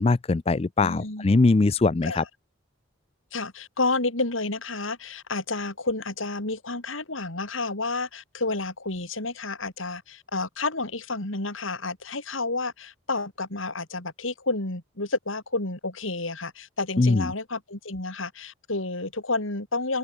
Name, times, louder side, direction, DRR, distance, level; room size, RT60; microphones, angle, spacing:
voice 1, 0.0-2.2 17.0-17.3, left 3 dB, 30° left, 0.4 m, -21 dB
voice 2, 0.8-1.4 2.0-2.3 3.3-20.0, left 3 dB, 90° left, 4.3 m, -30 dB
head